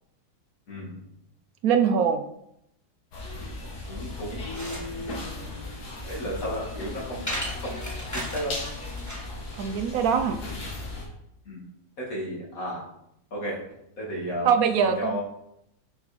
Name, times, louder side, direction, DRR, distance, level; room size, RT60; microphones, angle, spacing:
voice 1, 0.7-1.1 3.9-5.7 6.0-7.3 7.6-7.8 8.1-8.5 11.5-11.6 12.0-12.8 13.3-13.6 14.0-14.5 14.8-15.2, equal, 55° left, -4 dB, 2.6 m, -33 dB
voice 2, 1.6-2.2 9.6-10.4 14.4-15.1, right 7 dB, 70° right, 8 dB, 1.0 m, -22 dB
sound 1, 3.1-11.1, left 2 dB, 75° left, 2.2 m, -37 dB
sound 2, 4.2-9.3, equal, 10° left, 1.2 m, -37 dB
6.2 x 5.7 x 4.3 m, 0.80 s
omnidirectional pair, 1.7 m